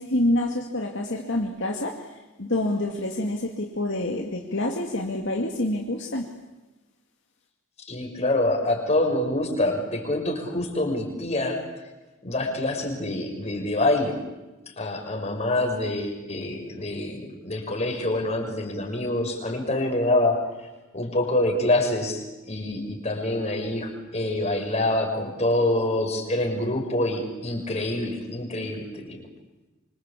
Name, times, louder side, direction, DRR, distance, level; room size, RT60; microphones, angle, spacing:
voice 1, 0.0-6.3, left 1 dB, 60° left, 1 dB, 2.5 m, -27 dB
voice 2, 7.9-11.6 12.2-14.1 14.8-20.4 20.9-29.2, left 1 dB, 30° left, 2 dB, 6.0 m, -26 dB
26.0 x 26.0 x 8.5 m, 1.1 s
head